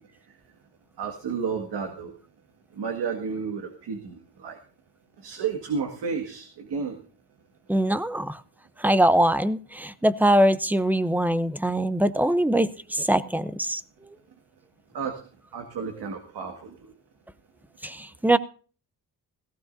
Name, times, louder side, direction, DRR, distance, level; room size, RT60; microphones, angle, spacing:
voice 1, 1.0-2.1 2.8-4.6 5.2-7.0 14.9-15.1 15.5-16.7, right 5 dB, 90° right, 3 dB, 2.0 m, -31 dB
voice 2, 7.7-8.4 8.8-13.8 17.8-18.4, right 1 dB, 5° right, 14 dB, 0.7 m, -22 dB
17.5 x 16.0 x 2.7 m, 0.40 s
cardioid pair, 95°, 40 cm